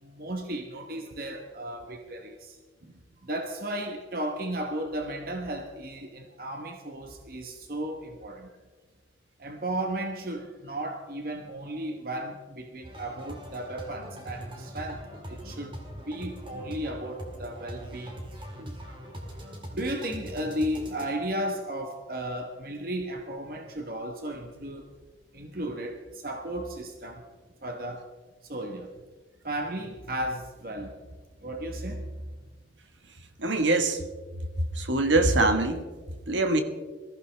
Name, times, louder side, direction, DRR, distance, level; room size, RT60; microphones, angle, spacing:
voice 1, 0.0-2.6 3.2-8.5 9.4-18.3 18.6-18.7 19.7-24.9 25.3-27.2 27.6-28.1 28.4-28.9 29.4-31.1 31.4-32.1, right 1 dB, 50° right, 4 dB, 1.1 m, -34 dB
sound 1, 12.8-21.1, equal, 25° right, 2.2 m, -42 dB
voice 2, 33.4-34.0 34.8-35.8 36.3-36.6, right 2 dB, 85° right, 7 dB, 1.5 m, -23 dB
21.5 x 14.5 x 3.4 m, 1.4 s
head